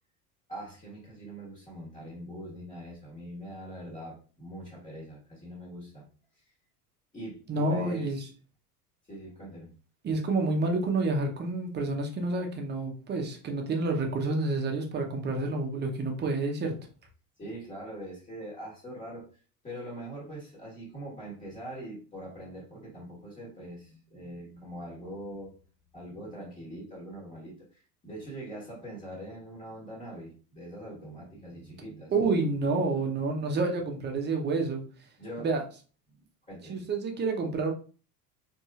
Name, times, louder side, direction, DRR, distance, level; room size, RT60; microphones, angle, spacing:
voice 1, 0.5-6.0 7.1-8.3 9.1-9.7 17.4-19.3 19.6-25.5 25.9-32.1 32.7-32.8 33.4-33.6 35.2-35.5 36.1-36.2 36.5-36.8, right 1 dB, 15° left, -5 dB, 1.6 m, -42 dB
voice 2, 7.5-8.3 10.0-16.7 32.1-34.8 35.4-35.6 36.7-37.7, right 3 dB, 20° right, 3 dB, 0.8 m, -29 dB
4.1 x 2.8 x 2.4 m, 0.38 s
figure-of-eight pair, 70°, 47 cm